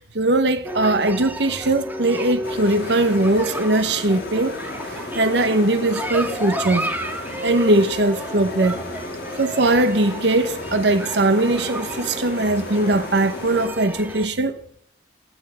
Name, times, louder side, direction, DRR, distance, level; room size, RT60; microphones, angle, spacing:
voice 1, 0.1-6.9 7.4-8.8 9.4-14.6, right 2 dB, 70° right, 1.0 m, -20 dB
sound 1, 0.6-14.3, right 1 dB, 10° right, 1.4 m, -32 dB
sound 2, 2.4-13.7, left 2 dB, 65° left, 3.2 m, -35 dB
18.5 x 9.1 x 6.3 m
head